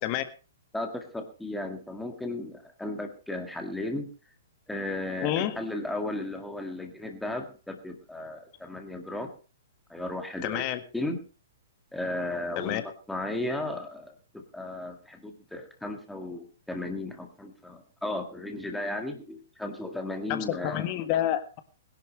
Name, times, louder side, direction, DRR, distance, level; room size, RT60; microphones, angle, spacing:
voice 1, 0.7-4.1 4.7-9.3 9.9-10.6 10.9-11.2 11.9-20.9, left 2 dB, 5° left, 4 dB, 1.9 m, -35 dB
voice 2, 5.2-5.6 10.4-10.8 12.6-12.8 20.3-21.6, left 12 dB, 35° left, 9 dB, 1.7 m, -28 dB
21.0 x 11.0 x 3.2 m, 0.35 s
figure-of-eight pair, 115°, 0 cm